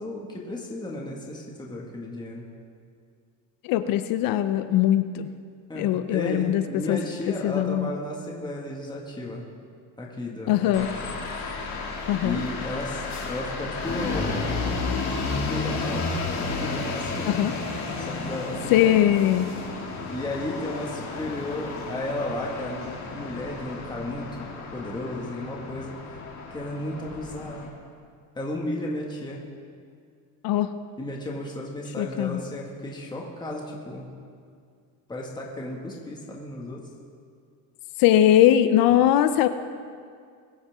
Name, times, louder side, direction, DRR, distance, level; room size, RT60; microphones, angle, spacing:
voice 1, 0.0-2.5 5.7-9.5 10.0-11.2 12.2-14.6 15.4-16.1 16.5-17.4 18.0-19.0 20.1-25.9 26.5-27.7 28.4-29.4 31.0-34.1 35.1-36.9 38.9-39.0, left 1 dB, 10° left, -2 dB, 1.8 m, -34 dB
voice 2, 3.6-5.3 5.8-7.0 7.3-7.9 10.5-10.9 12.1-12.4 17.3-17.5 18.7-19.5 30.4-30.7 32.0-32.4 38.0-39.5, left 12 dB, 60° left, 11 dB, 0.7 m, -21 dB
sound 1, 10.7-27.7, left 3 dB, 45° left, 2.8 m, -32 dB
22.0 x 9.5 x 3.6 m, 2.2 s
cardioid pair, 130°, 39 cm